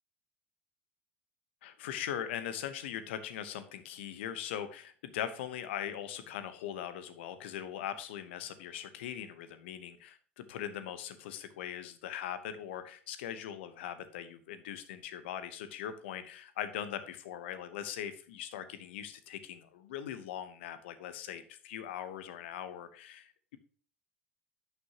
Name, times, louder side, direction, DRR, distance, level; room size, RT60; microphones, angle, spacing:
voice 1, 1.6-23.6, left 10 dB, 70° left, 12 dB, 0.9 m, -40 dB
11.0 x 6.7 x 2.9 m, 0.42 s
figure-of-eight pair, 70°, 6 cm